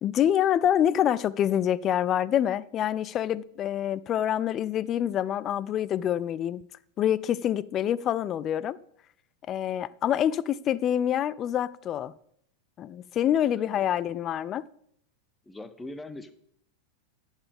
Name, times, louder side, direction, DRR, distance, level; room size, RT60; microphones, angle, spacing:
voice 1, 0.0-6.6 7.0-8.8 9.5-12.1 12.8-14.7, left 10 dB, 30° left, 0.4 m, -26 dB
voice 2, 13.6-13.9 15.5-16.3, left 2 dB, 10° left, 0.8 m, -41 dB
11.0 x 9.0 x 3.5 m
figure-of-eight pair, 90°, 0 cm